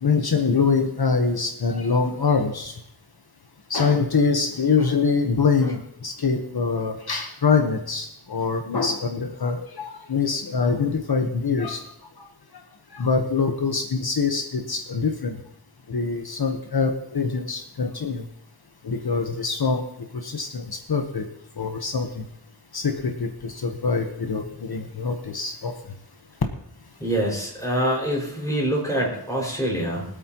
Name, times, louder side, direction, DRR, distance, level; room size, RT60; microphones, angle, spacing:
voice 1, 0.0-2.7 3.7-11.8 12.9-15.3 15.9-18.2 18.8-19.8 20.2-21.2 21.6-22.2 22.7-25.7, left 5 dB, 65° left, 4 dB, 1.2 m, -24 dB
voice 2, 27.0-30.1, right 1 dB, 10° left, -3 dB, 5.8 m, -25 dB
23.5 x 8.6 x 3.0 m, 0.76 s
wide cardioid pair, 85°, 40 cm